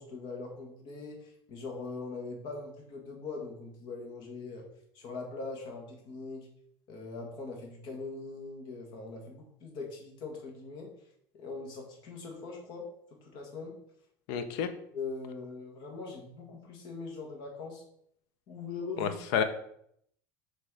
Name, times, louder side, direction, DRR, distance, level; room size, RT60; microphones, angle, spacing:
voice 1, 0.0-4.7 4.9-6.5 6.9-10.9 11.3-12.9 13.2-13.8 14.9-17.8 18.5-19.2, left 4 dB, 55° left, 1 dB, 1.7 m, -41 dB
voice 2, 14.3-14.7 19.0-19.4, left 7 dB, 75° left, 9 dB, 0.7 m, -29 dB
6.3 x 3.2 x 4.7 m, 0.70 s
cardioid pair, 135°, 9 cm